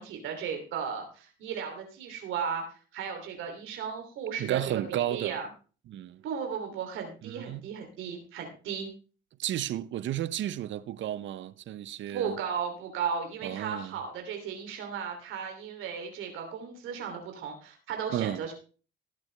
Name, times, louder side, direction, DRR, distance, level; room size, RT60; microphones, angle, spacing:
voice 1, 0.0-5.5 6.2-8.9 12.1-18.5, right 7 dB, 90° right, 3.0 m, -35 dB
voice 2, 4.4-5.4 5.9-6.2 7.2-7.6 9.4-12.4 13.4-14.0 18.1-18.4, right 12 dB, 70° right, 0.7 m, -33 dB
18.0 x 7.7 x 3.3 m
cardioid pair, 90°, 20 cm